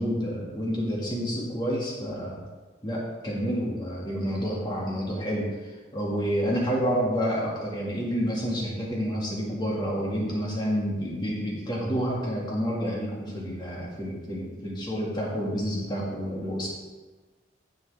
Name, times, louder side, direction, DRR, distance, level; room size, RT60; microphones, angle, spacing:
voice 1, 0.0-2.4 2.8-16.7, equal, 20° left, -5 dB, 2.0 m, -29 dB
10.0 x 7.0 x 3.5 m, 1.3 s
head